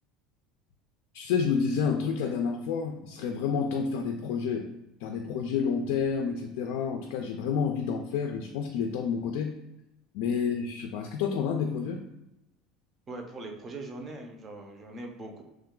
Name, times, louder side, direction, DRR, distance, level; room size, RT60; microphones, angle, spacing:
voice 1, 1.1-4.7 5.0-9.6 10.1-12.0, left 6 dB, 75° left, 3 dB, 0.3 m, -29 dB
voice 2, 13.1-15.4, right 2 dB, 30° right, 3 dB, 0.6 m, -41 dB
3.1 x 2.2 x 3.6 m, 0.93 s
supercardioid pair, 120°, 0 cm